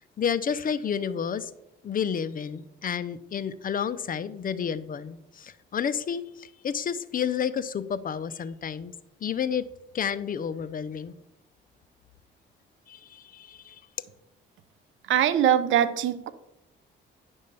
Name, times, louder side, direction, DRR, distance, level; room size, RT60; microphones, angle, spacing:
voice 1, 0.0-1.5 1.8-8.9 9.2-9.7 9.9-11.1 12.9-13.8, left 7 dB, 45° left, 13 dB, 0.6 m, -30 dB
voice 2, 15.1-16.3, right 10 dB, 80° right, 13 dB, 0.8 m, -22 dB
10.5 x 3.6 x 6.7 m, 0.85 s
cardioid pair, 90°, 20 cm